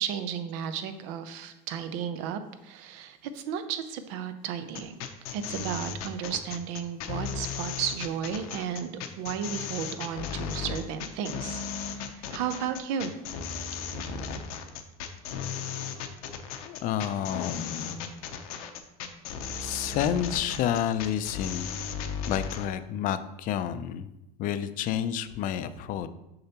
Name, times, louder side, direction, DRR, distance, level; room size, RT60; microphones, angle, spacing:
voice 1, 0.0-4.9 5.3-13.1, right 8 dB, 75° right, 9 dB, 0.7 m, -34 dB
sound 1, 4.7-22.7, left 6 dB, 85° left, 0.7 m, -36 dB
voice 2, 16.6-18.1 19.6-21.7 22.3-24.1 24.4-26.1, left 10 dB, 50° left, 13 dB, 0.4 m, -30 dB
6.6 x 5.6 x 2.9 m, 0.90 s
supercardioid pair, 120°, 18 cm